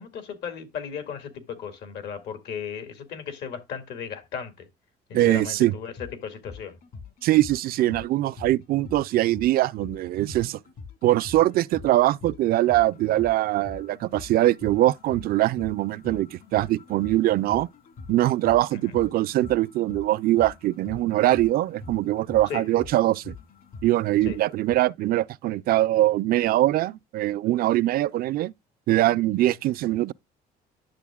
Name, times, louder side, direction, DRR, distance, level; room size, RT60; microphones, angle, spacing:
voice 1, 0.0-4.7 5.1-5.9 6.2-6.7 22.5-22.7 24.3-24.4, left 7 dB, 75° left, 2.0 m, -35 dB
voice 2, 5.1-5.7 7.2-10.6 11.0-17.7 18.1-23.3 23.8-28.5 28.9-30.1, right 15 dB, 60° right, 0.4 m, -22 dB
sound 1, 5.8-24.8, left 4 dB, 60° left, 2.0 m, -44 dB
10.5 x 6.8 x 2.3 m
cardioid pair, 110°, 17 cm